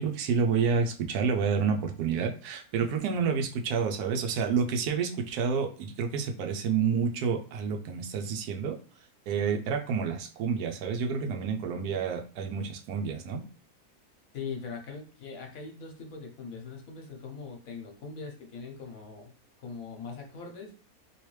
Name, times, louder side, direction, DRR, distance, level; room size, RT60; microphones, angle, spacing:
voice 1, 0.0-8.8 9.3-13.4, right 6 dB, 90° right, 5 dB, 1.1 m, -29 dB
voice 2, 14.3-19.3 19.6-20.7, left 5 dB, 70° left, 2 dB, 1.2 m, -41 dB
3.2 x 2.8 x 3.1 m, 0.39 s
omnidirectional pair, 1.6 m